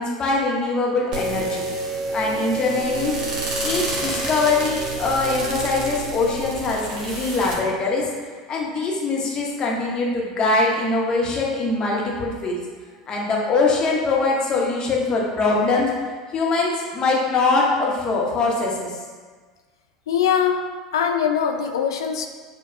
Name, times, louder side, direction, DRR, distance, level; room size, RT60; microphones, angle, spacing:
voice 1, 0.0-1.6 2.1-3.2 3.6-8.1 8.5-12.6 13.1-15.9 16.3-19.0, left 3 dB, 35° left, -2 dB, 0.9 m, -22 dB
sound 1, 1.1-7.5, right 2 dB, 40° right, 1.0 m, -28 dB
voice 2, 20.1-20.6 20.9-22.3, left 8 dB, 80° left, 4 dB, 0.4 m, -21 dB
6.5 x 2.3 x 2.6 m, 1.5 s
hypercardioid pair, 80°, 2 cm